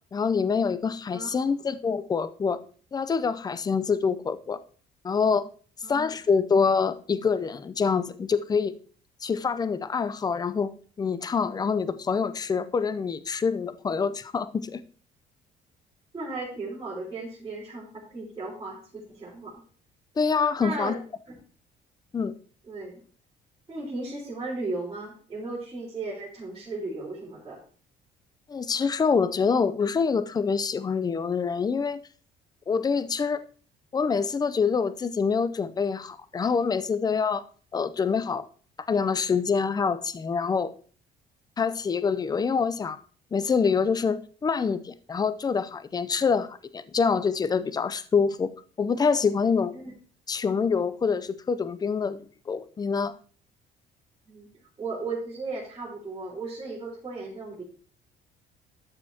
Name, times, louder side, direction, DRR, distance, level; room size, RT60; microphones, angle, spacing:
voice 1, 0.1-2.6 2.9-4.6 5.0-5.5 5.9-8.7 9.2-10.7 11.0-14.8 20.2-21.0 22.1-22.3 28.5-32.0 32.7-33.4 33.9-37.4 37.7-38.5 38.9-40.7 41.6-43.0 43.3-48.5 48.8-49.7 50.3-53.1, left 5 dB, 25° left, 14 dB, 0.5 m, -26 dB
voice 2, 1.1-1.5 5.8-6.1 16.1-19.6 20.6-21.0 21.3-21.4 22.7-23.0 23.7-27.6 49.7-49.9 54.3-54.5 54.8-57.6, right 3 dB, 25° right, -9 dB, 4.1 m, -36 dB
12.0 x 6.7 x 2.8 m, 0.42 s
cardioid pair, 110°, 17 cm